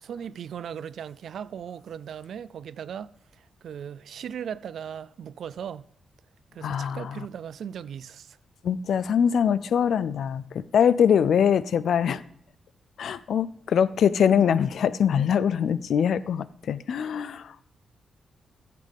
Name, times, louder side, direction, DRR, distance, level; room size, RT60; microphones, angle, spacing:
voice 1, 0.0-3.1 3.4-5.9 6.5-8.4, right 8 dB, 70° right, 0.4 m, -38 dB
voice 2, 6.6-7.3 8.6-12.2 13.0-17.7, left 8 dB, 70° left, 0.4 m, -23 dB
15.0 x 7.6 x 3.5 m
wide cardioid pair, 150°, 0 cm